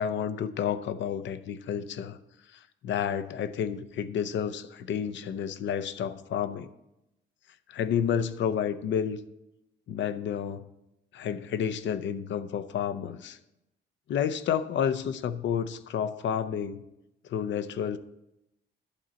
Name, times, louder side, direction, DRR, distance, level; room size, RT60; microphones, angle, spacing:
voice 1, 0.0-2.2 2.8-6.7 7.7-9.2 9.9-10.7 11.1-13.4 14.1-16.8 17.3-18.0, left 8 dB, 65° left, 13 dB, 0.7 m, -30 dB
11.5 x 4.0 x 7.6 m, 0.88 s
cardioid pair, 90°, 20 cm